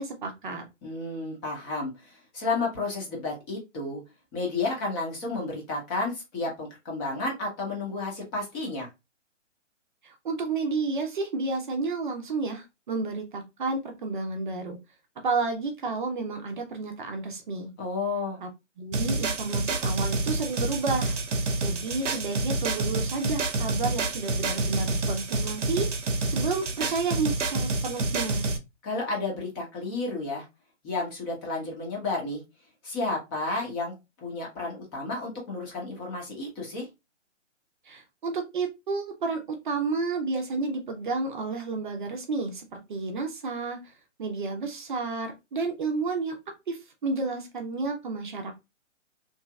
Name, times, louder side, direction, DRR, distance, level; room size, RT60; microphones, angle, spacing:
voice 1, 0.0-0.7 10.0-14.8 15.2-17.7 18.4-18.5 18.8-21.2 21.6-25.9 26.3-28.5 37.9-43.9 44.2-46.4 46.7-48.5, right 3 dB, 40° right, 4 dB, 0.6 m, -31 dB
voice 2, 0.8-4.0 4.3-8.9 17.8-18.4 28.8-30.5 30.8-32.4 32.8-36.9, left 3 dB, 20° left, -1 dB, 0.8 m, -32 dB
sound 1, 18.9-28.6, right 3 dB, 70° right, 0.8 m, -28 dB
3.0 x 2.8 x 2.2 m, 0.23 s
figure-of-eight pair, 135°, 38 cm